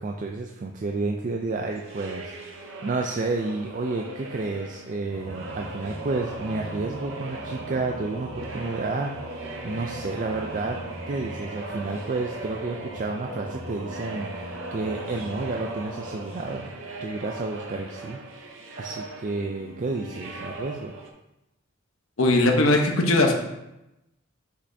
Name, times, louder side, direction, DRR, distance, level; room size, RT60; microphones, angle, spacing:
voice 1, 0.0-2.3 2.6-10.8 11.1-16.7 17.0-18.5 18.8-20.9, right 3 dB, 35° right, 2 dB, 0.3 m, -31 dB
sound 1, 1.7-21.1, right 2 dB, 60° right, 0.7 m, -41 dB
Singing / Musical instrument, 5.1-17.6, right 2 dB, 85° right, 1.0 m, -38 dB
voice 2, 22.2-23.3, left 2 dB, 70° left, 2 dB, 0.9 m, -19 dB
6.7 x 5.3 x 2.7 m, 0.92 s
head